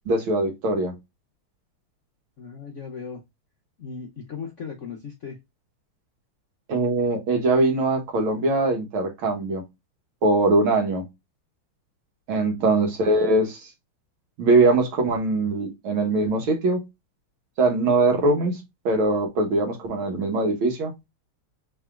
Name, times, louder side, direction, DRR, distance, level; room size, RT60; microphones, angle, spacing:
voice 1, 0.1-0.9 6.7-9.6 10.2-11.0 12.3-13.7 14.4-16.8 17.6-18.6 18.9-20.9, right 2 dB, 70° right, 1.9 m, -22 dB
voice 2, 2.4-3.2 3.8-5.4 12.6-12.8, left 5 dB, 60° left, 0.8 m, -37 dB
4.0 x 3.9 x 2.3 m
omnidirectional pair, 2.4 m